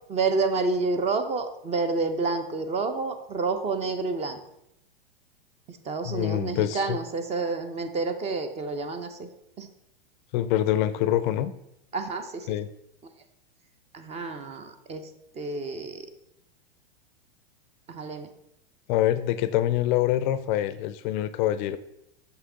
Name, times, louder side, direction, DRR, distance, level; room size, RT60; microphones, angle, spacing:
voice 1, 0.1-4.4 5.7-9.3 9.6-9.7 11.9-12.6 13.9-15.1 15.3-16.1 17.9-18.3, right 3 dB, 20° right, 8 dB, 0.5 m, -29 dB
voice 2, 6.1-7.0 10.3-11.5 12.5-12.7 18.9-21.8, left 12 dB, 50° left, 13 dB, 0.4 m, -25 dB
5.9 x 5.8 x 3.7 m, 0.79 s
hypercardioid pair, 110°, 31 cm